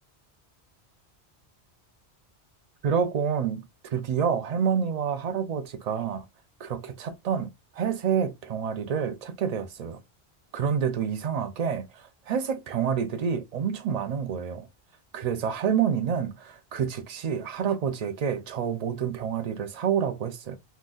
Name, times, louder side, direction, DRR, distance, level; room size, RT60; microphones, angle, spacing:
voice 1, 2.8-6.2 6.6-10.0 10.5-14.7 15.1-20.6, right 7 dB, 50° right, 0.5 m, -28 dB
3.9 x 2.2 x 2.4 m
omnidirectional pair, 1.1 m